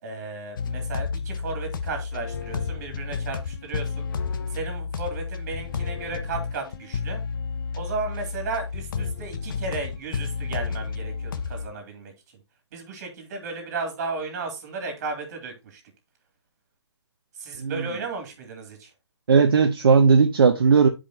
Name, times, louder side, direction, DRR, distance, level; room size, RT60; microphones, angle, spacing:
voice 1, 0.0-4.1 4.5-7.2 7.7-12.1 12.7-15.8 17.3-18.9, right 4 dB, 35° right, 3.0 m, -34 dB
sound 1, 0.6-11.7, left 5 dB, 50° left, 0.9 m, -31 dB
voice 2, 19.3-20.9, right 5 dB, 55° right, 0.8 m, -17 dB
10.5 x 5.2 x 3.0 m
figure-of-eight pair, 140°, 14 cm